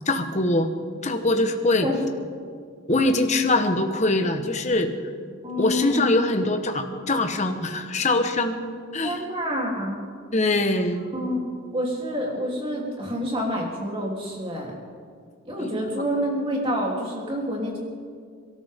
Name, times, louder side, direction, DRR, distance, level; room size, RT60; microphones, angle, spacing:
voice 1, 0.1-0.7 1.0-1.9 2.9-4.9 5.6-8.6 8.9-9.2 10.3-11.1 15.6-15.7, left 2 dB, 35° left, 5 dB, 1.2 m, -23 dB
voice 2, 5.4-6.1 9.0-10.0 11.1-11.4 11.7-14.7 15.4-17.8, equal, 25° right, -3 dB, 3.3 m, -28 dB
29.0 x 13.0 x 3.7 m, 2.1 s
head